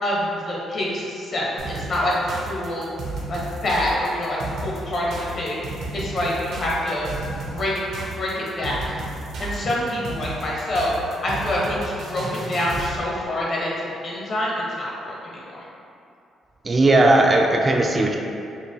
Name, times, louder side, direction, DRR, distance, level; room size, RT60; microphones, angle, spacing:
voice 1, 0.0-2.9 3.3-7.1 7.5-7.7 8.2-8.9 9.4-10.9 11.2-15.6, left 1 dB, 55° left, -5 dB, 1.0 m, -26 dB
sound 1, 1.6-13.0, right 3 dB, 80° right, 0.7 m, -33 dB
voice 2, 16.6-18.2, right 2 dB, 30° right, 1 dB, 0.3 m, -17 dB
4.8 x 2.5 x 2.8 m, 2.6 s
cardioid pair, 90°, 0 cm